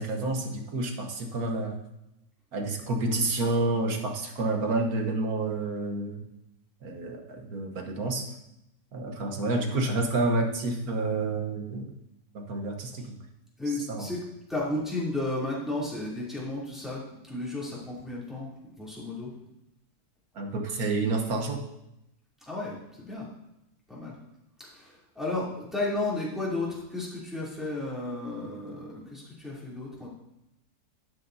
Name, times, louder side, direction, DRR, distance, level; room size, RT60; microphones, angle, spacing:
voice 1, 0.0-1.8 2.5-6.2 6.8-8.3 8.9-11.9 12.3-13.2 13.7-14.1 20.4-21.6, right 2 dB, 80° right, 3 dB, 1.6 m, -29 dB
voice 2, 13.6-14.2 14.5-19.3 22.5-23.3 23.9-24.2 24.6-30.1, left 2 dB, ahead, -8 dB, 3.0 m, -33 dB
12.5 x 8.0 x 2.7 m, 0.88 s
omnidirectional pair, 1.6 m